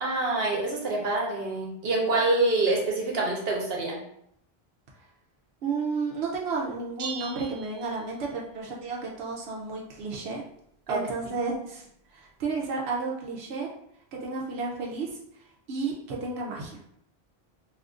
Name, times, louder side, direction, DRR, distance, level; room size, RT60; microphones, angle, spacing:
voice 1, 0.0-4.0 10.9-11.0, right 2 dB, 70° right, -1 dB, 1.0 m, -26 dB
voice 2, 5.6-10.4 10.9-11.9 12.1-13.7 14.1-15.2 15.7-16.8, right 4 dB, 90° right, -2 dB, 0.9 m, -32 dB
sound 1, 7.0-8.6, right 6 dB, 55° right, 0.5 m, -40 dB
2.7 x 2.5 x 3.6 m, 0.72 s
omnidirectional pair, 1.1 m